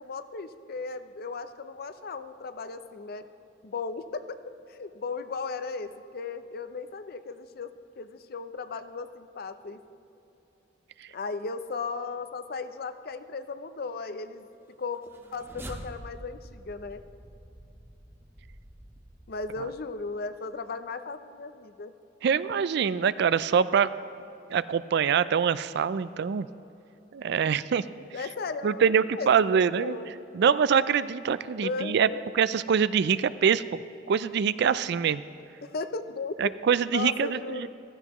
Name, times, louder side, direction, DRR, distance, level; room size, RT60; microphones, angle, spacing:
voice 1, 0.0-3.3 3.6-9.8 11.1-14.4 14.8-17.0 19.3-21.9 28.1-28.8 29.2-30.1 31.6-32.2 35.6-36.4 36.9-37.7, left 4 dB, 55° left, 11 dB, 0.6 m, -36 dB
sound 1, 15.0-20.3, right 1 dB, 10° right, 0.7 m, -46 dB
voice 2, 22.2-23.9 24.5-26.5 27.1-27.8 28.6-30.0 30.3-32.1 32.3-33.8 34.1-35.2 36.4-37.7, right 7 dB, 65° right, 15 dB, 0.4 m, -24 dB
15.5 x 14.0 x 3.0 m, 2.9 s
head